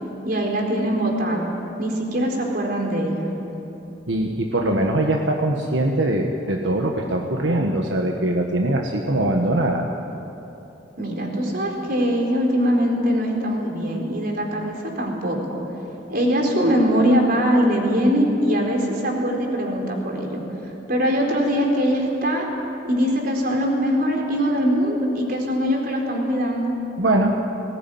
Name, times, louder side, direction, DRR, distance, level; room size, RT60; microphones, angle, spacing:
voice 1, 0.2-1.5 1.8-3.3 11.0-15.6 16.1-22.5 22.8-26.7, equal, 55° right, 1 dB, 4.2 m, -22 dB
voice 2, 4.1-9.9 27.0-27.4, right 1 dB, 85° right, 2 dB, 1.5 m, -22 dB
20.0 x 18.5 x 9.3 m, 2.9 s
head